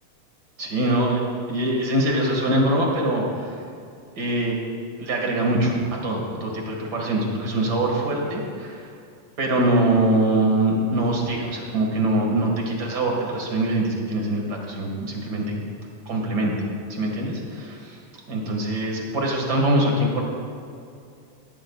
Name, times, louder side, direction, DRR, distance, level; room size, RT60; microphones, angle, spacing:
voice 1, 0.6-1.2 1.5-3.5 4.2-4.6 5.0-8.8 9.4-15.6 16.1-16.5 16.9-18.0 18.3-20.2, right 1 dB, 35° right, 0 dB, 2.1 m, -23 dB
18.0 x 14.0 x 2.4 m, 2.4 s
omnidirectional pair, 3.5 m